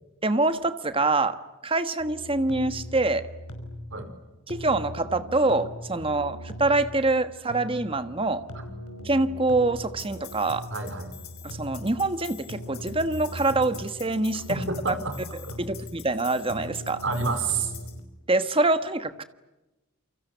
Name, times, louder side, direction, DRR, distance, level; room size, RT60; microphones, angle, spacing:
voice 1, 0.2-1.4 1.6-3.3 4.5-8.4 9.0-10.7 11.4-14.6 15.6-17.0 18.3-19.2, right 2 dB, 25° right, 11 dB, 1.3 m, -25 dB
sound 1, 2.0-18.0, left 1 dB, 85° left, 5.2 m, -40 dB
voice 2, 10.7-11.1 14.7-15.2 15.4-15.6 17.0-17.7, right 4 dB, 60° right, 8 dB, 4.8 m, -29 dB
28.5 x 24.5 x 8.1 m, 1.0 s
head